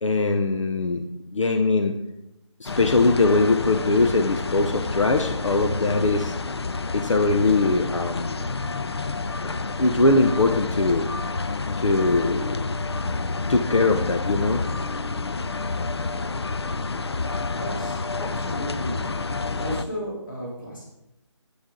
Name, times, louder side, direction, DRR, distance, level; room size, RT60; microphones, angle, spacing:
voice 1, 0.0-1.0 1.3-1.9 2.6-6.3 6.9-8.5 9.4-11.1 11.8-12.7 13.5-14.6 18.2-18.3, left 3 dB, 85° left, 6 dB, 1.0 m, -21 dB
sound 1, 2.6-19.8, left 3 dB, 60° left, 0.5 m, -29 dB
voice 2, 17.5-18.0 18.3-19.0 19.6-20.8, equal, 40° left, -3 dB, 3.6 m, -33 dB
10.5 x 8.4 x 3.9 m, 0.89 s
figure-of-eight pair, 180°, 16 cm